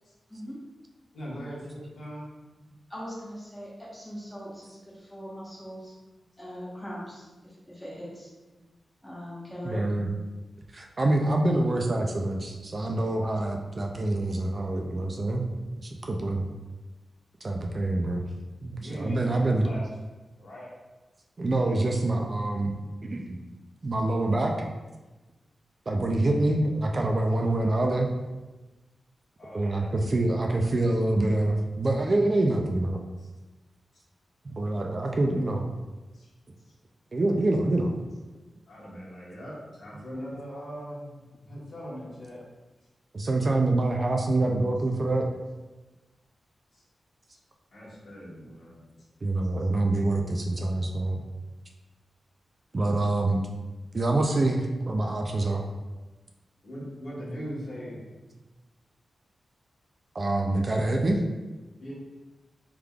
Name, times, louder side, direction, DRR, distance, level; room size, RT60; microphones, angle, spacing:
voice 1, 1.1-2.3 18.8-19.9 20.4-20.7 26.2-26.5 29.4-29.9 33.2-33.3 36.1-36.3 38.7-42.4 46.7-46.8 47.3-47.4 47.7-48.8 56.6-58.0 61.8-61.9, equal, 65° left, -7 dB, 1.2 m, -40 dB
voice 2, 2.9-6.0 6.4-8.3 9.0-9.8, equal, 10° left, -7 dB, 1.1 m, -40 dB
voice 3, 9.6-10.1 10.7-15.4 15.8-16.5 17.4-18.2 18.6-19.7 21.4-22.8 23.0-23.4 23.8-24.5 25.9-28.1 29.5-33.0 34.4-35.6 37.1-37.9 43.1-45.3 49.2-51.2 52.7-53.5 53.9-55.7 60.1-61.2, right 2 dB, 35° right, 1 dB, 0.3 m, -26 dB
3.5 x 3.3 x 2.3 m, 1.2 s
wide cardioid pair, 115°, 0 cm